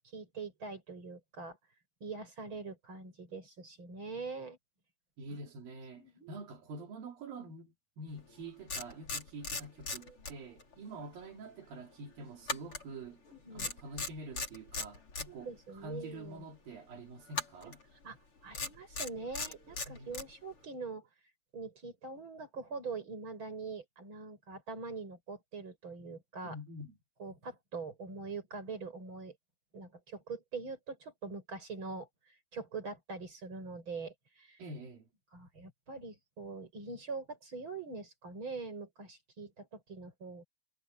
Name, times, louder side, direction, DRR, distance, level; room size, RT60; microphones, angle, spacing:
voice 1, 0.1-1.6 2.0-4.6 6.0-6.4 10.0-10.2 13.3-13.7 15.3-16.4 17.6-17.8 18.0-18.2 18.4-21.1 21.5-26.6 27.2-29.4 29.7-34.6 35.3-40.4, right 4 dB, 35° right, 7.6 m, -43 dB
voice 2, 5.2-13.2 13.5-17.8 19.9-20.2 26.4-27.0 34.6-35.1, right 2 dB, 80° right, 4.7 m, -47 dB
sound 1, 8.2-8.3 8.7-10.7 11.0-11.2 12.5-13.3 13.6-15.3 17.3-17.8 18.5-20.3, left 3 dB, 40° left, 4.8 m, -38 dB
omnidirectional pair, 4.0 m